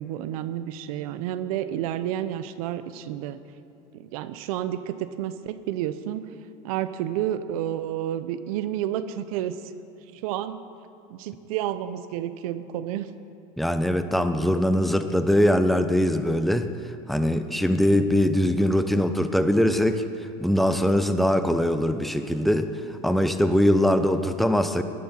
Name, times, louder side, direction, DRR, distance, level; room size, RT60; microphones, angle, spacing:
voice 1, 0.0-3.4 3.9-6.3 6.6-9.6 10.1-10.6 11.1-13.1, right 11 dB, 75° right, 12 dB, 0.8 m, -30 dB
voice 2, 13.6-16.7 17.1-20.0 20.4-24.8, equal, ahead, 9 dB, 0.8 m, -22 dB
18.5 x 12.0 x 4.5 m, 2.7 s
supercardioid pair, 100°, 19 cm